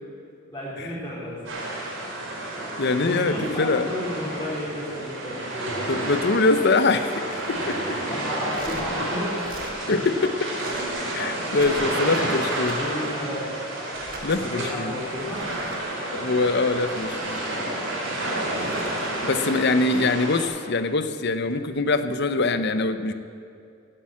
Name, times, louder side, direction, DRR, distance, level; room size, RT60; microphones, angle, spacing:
voice 1, 0.5-1.4 3.0-5.9 8.1-9.6 11.9-13.6 14.1-15.5 19.3-20.1, equal, 15° left, -11 dB, 3.6 m, -33 dB
sound 1, 1.5-20.4, right 1 dB, 80° right, 4.7 m, -30 dB
voice 2, 2.8-3.9 5.9-7.2 7.5-8.0 9.9-10.5 11.1-12.8 14.2-14.9 16.1-17.4 19.2-23.1, left 3 dB, 60° left, 9 dB, 0.8 m, -23 dB
sound 2, 7.2-8.0 8.5-8.9 9.4-9.8 10.5-11.0 11.4-12.0 12.5-12.8 13.9-14.3 15.1-15.8 16.7-17.4 18.5-19.7 21.5-21.7, right 3 dB, 45° right, 1.5 m, -44 dB
16.5 x 8.8 x 7.6 m, 2.4 s
head